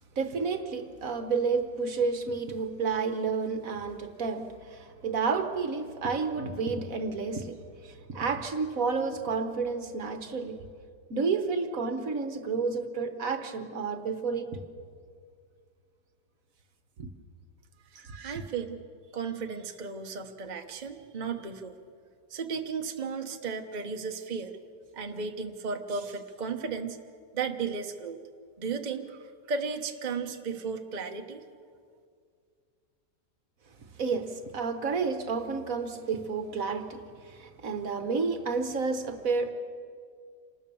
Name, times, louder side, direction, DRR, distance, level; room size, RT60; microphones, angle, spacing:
voice 1, 0.2-10.6 11.1-14.5 17.0-17.1 17.9-18.5 34.0-39.5, right 4 dB, 55° right, 1.5 m, -31 dB
voice 2, 17.9-18.8 19.1-21.8 22.3-24.6 24.9-27.0 27.3-28.2 28.6-31.4, right 5 dB, 30° right, 1.1 m, -35 dB
27.0 x 19.5 x 7.0 m
omnidirectional pair, 1.8 m